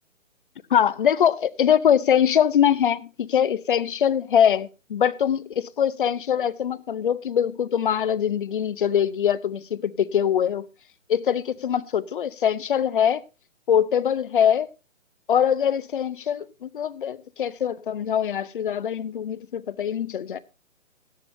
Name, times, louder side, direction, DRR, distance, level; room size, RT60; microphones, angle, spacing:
voice 1, 0.7-10.7 11.1-13.2 13.7-14.7 15.3-20.4, left 9 dB, 40° left, 0.7 m, -23 dB
17.5 x 11.5 x 2.6 m
hypercardioid pair, 155°, 40 cm